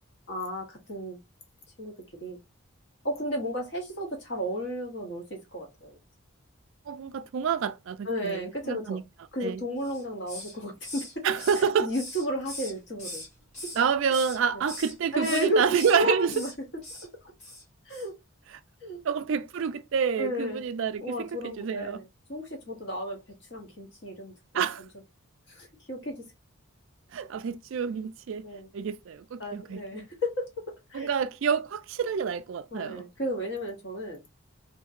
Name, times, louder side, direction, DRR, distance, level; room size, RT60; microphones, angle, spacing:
voice 1, 0.3-1.2 1.8-1.9 2.2-2.4 3.0-6.0 8.0-9.0 9.3-11.2 11.8-13.2 15.1-15.6 15.9-16.5 17.9-18.2 18.8-19.0 20.2-20.6 21.0-22.0 22.3-23.2 23.5-24.3 25.5-26.3 28.4-28.7 29.4-31.1 32.7-34.2, equal, 55° left, 0.9 m, -33 dB
voice 2, 6.9-9.0 9.4-9.6 11.2-11.9 13.7-16.4 18.5-18.6 19.0-22.0 24.5-24.9 27.1-28.4 28.7-30.1 30.9-33.0, right 6 dB, 65° right, 0.3 m, -28 dB
Hiss, 9.8-10.6 10.8-13.3 13.5-14.4 14.7-14.9 15.2-16.0 16.3-16.5 16.8-17.1 17.4-17.6 17.9-18.1, left 1 dB, 35° left, 1.6 m, -40 dB
2.8 x 2.7 x 2.4 m
head